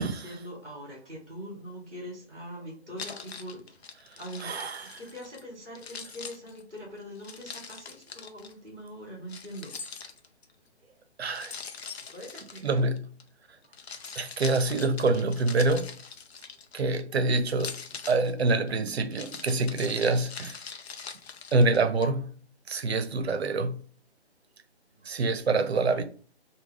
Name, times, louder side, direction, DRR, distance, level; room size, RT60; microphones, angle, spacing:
voice 1, 0.0-3.8 4.2-9.7 12.1-12.9 24.9-25.0, equal, ahead, 0.7 m, -43 dB
Keys jangling, 3.0-5.4 5.8-8.5 9.3-10.5 11.4-13.2 13.6-17.0 17.5-22.1, left 6 dB, 65° left, 0.6 m, -43 dB
voice 2, 4.4-4.9 11.2-11.5 12.6-13.0 14.2-15.9 16.7-17.7 18.1-20.6 21.5-22.3 22.7-23.8 25.1-26.0, right 3 dB, 70° right, 0.6 m, -26 dB
3.4 x 2.2 x 3.2 m
hypercardioid pair, 160°, 34 cm